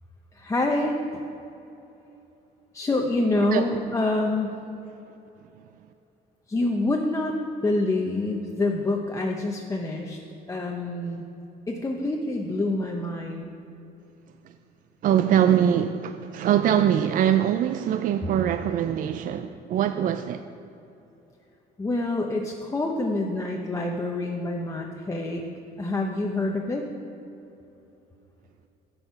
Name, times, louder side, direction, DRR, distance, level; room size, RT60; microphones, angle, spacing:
voice 1, 0.4-1.0 2.7-4.6 6.5-7.4 7.6-10.2 10.5-11.2 11.7-13.5 21.8-25.4 25.8-26.8, left 2 dB, 20° left, 0.8 m, -26 dB
voice 2, 15.0-20.4, right 10 dB, 55° right, 0.4 m, -23 dB
10.0 x 7.9 x 5.7 m
cardioid pair, 110°, 17 cm